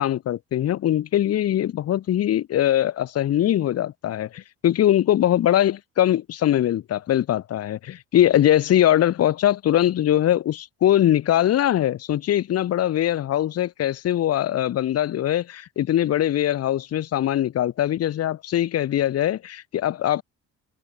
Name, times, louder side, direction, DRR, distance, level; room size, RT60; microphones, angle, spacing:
voice 1, 0.0-20.2, left 12 dB, 45° left, 1.4 m, -21 dB
cardioid pair, 165°, 34 cm